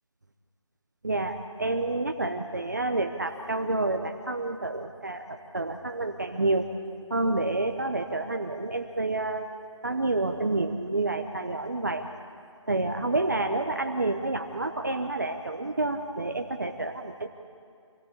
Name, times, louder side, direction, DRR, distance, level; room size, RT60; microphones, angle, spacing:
voice 1, 1.0-6.7 7.1-9.5 9.8-12.0 12.7-17.3, right 2 dB, 35° right, 5 dB, 0.8 m, -29 dB
26.0 x 16.5 x 8.4 m, 2.3 s
figure-of-eight pair, 180°, 16 cm